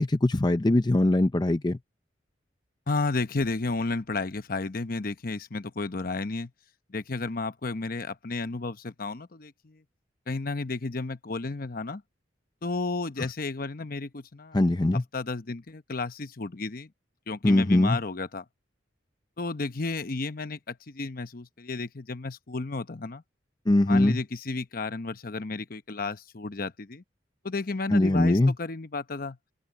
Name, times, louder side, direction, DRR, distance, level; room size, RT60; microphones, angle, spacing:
voice 1, 0.0-1.8 14.5-15.0 17.4-18.0 23.7-24.2 27.9-28.5, left 1 dB, 20° left, 0.5 m, -21 dB
voice 2, 2.9-6.5 6.9-9.8 10.3-12.0 12.6-14.6 15.1-16.9 17.3-18.4 19.4-23.2 23.9-27.0 27.4-29.4, left 3 dB, 50° left, 0.9 m, -32 dB
head